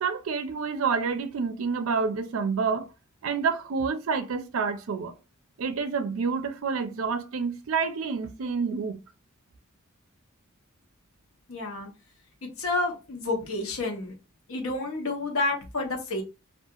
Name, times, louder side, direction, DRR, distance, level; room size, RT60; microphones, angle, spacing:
voice 1, 0.0-2.9 3.2-5.1 5.6-9.0, right 5 dB, 65° right, 0.4 m, -28 dB
voice 2, 11.5-11.9 12.6-14.1 14.5-16.2, left 2 dB, 70° left, 0.8 m, -29 dB
2.7 x 2.3 x 2.3 m
head